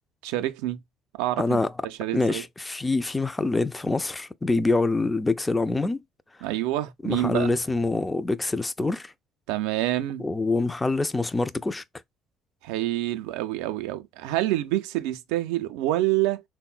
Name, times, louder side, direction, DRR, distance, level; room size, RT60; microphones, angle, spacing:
voice 1, 0.2-0.8 1.2-2.4 6.4-7.5 9.5-10.3 12.6-16.4, right 15 dB, 75° right, 0.3 m, -27 dB
voice 2, 1.4-1.7 2.1-6.0 7.0-9.1 10.2-11.8, left 3 dB, 20° left, 0.3 m, -25 dB
3.6 x 2.0 x 2.3 m
hypercardioid pair, 60°, 0 cm